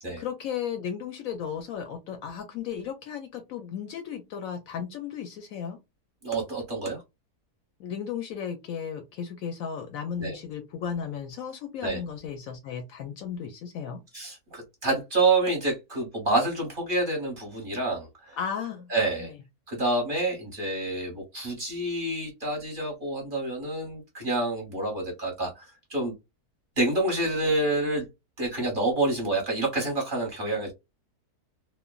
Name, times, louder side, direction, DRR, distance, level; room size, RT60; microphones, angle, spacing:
voice 1, 0.2-5.8 7.8-14.0 18.4-18.9 19.2-19.4, left 7 dB, 70° left, 0.9 m, -35 dB
voice 2, 6.2-7.0 10.2-10.4 11.8-12.0 14.1-18.4 18.9-19.3 19.7-25.6 25.9-26.1 26.8-28.0 28.4-30.7, right 2 dB, 35° right, 1.1 m, -28 dB
3.1 x 2.1 x 2.3 m
omnidirectional pair, 1.7 m